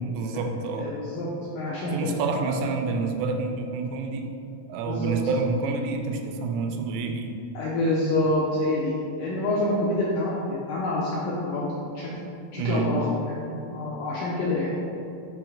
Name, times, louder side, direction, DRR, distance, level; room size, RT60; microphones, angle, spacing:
voice 1, 0.0-0.9 1.9-4.3 4.7-7.4 12.6-12.9, right 4 dB, 90° right, 4 dB, 2.6 m, -28 dB
voice 2, 0.8-1.3 1.6-2.2 4.9-5.1 7.6-8.9 9.2-11.7 12.0-12.1 12.5-14.7, left 2 dB, 90° left, -6 dB, 1.9 m, -27 dB
6.1 x 3.2 x 4.9 m, 2.7 s
omnidirectional pair, 4.5 m